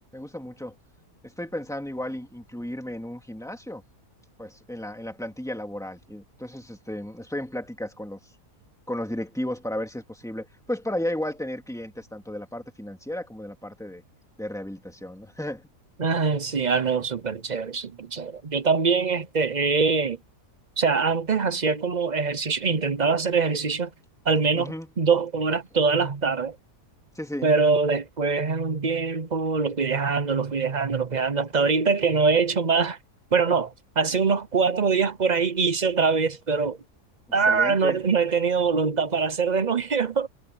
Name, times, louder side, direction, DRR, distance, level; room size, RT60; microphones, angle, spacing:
voice 1, 0.1-0.8 1.2-3.8 4.4-8.2 8.9-14.0 14.4-15.7 24.5-24.9 27.1-27.5 37.5-38.0, left 1 dB, ahead, 2.4 m, -34 dB
voice 2, 16.0-20.2 20.8-23.9 24.2-26.6 27.4-33.0 33.3-36.8 37.3-40.3, right 5 dB, 40° right, 0.7 m, -23 dB
omnidirectional pair, 1.7 m